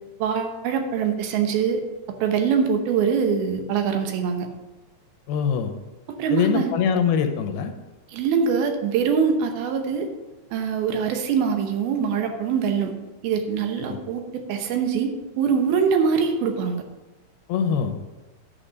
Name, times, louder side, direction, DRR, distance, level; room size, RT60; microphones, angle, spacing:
voice 1, 0.2-1.8 2.2-4.5 6.1-6.7 8.1-10.1 10.5-12.9 13.2-15.1 15.4-16.8, right 6 dB, 75° right, 5 dB, 2.7 m, -23 dB
voice 2, 5.3-5.7 6.3-7.7 13.9-14.0 17.5-18.0, left 7 dB, 80° left, 7 dB, 2.6 m, -23 dB
10.0 x 6.8 x 5.2 m, 1.1 s
omnidirectional pair, 4.6 m